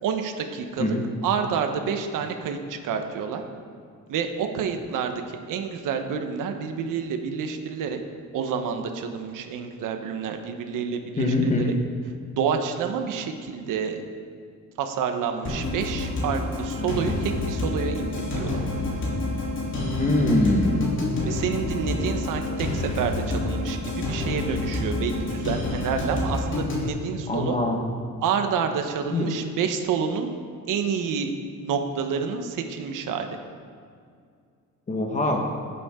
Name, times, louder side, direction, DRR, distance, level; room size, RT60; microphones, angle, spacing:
voice 1, 0.0-1.0 1.2-3.4 4.1-8.0 8.3-11.8 12.3-14.0 14.8-18.6 21.2-27.6 28.2-30.3 30.7-31.3 31.6-33.3, right 6 dB, 85° right, 5 dB, 1.1 m, -28 dB
voice 2, 11.2-11.7 20.0-20.9 27.3-27.8 29.1-29.3 34.9-35.5, left 2 dB, 25° left, 1 dB, 1.5 m, -23 dB
sound 1, 15.4-26.9, left 2 dB, 40° left, 3.0 m, -28 dB
sound 2, 16.8-25.6, left 3 dB, 55° left, 1.0 m, -38 dB
18.5 x 8.5 x 3.7 m, 2.2 s
cardioid pair, 160°, 31 cm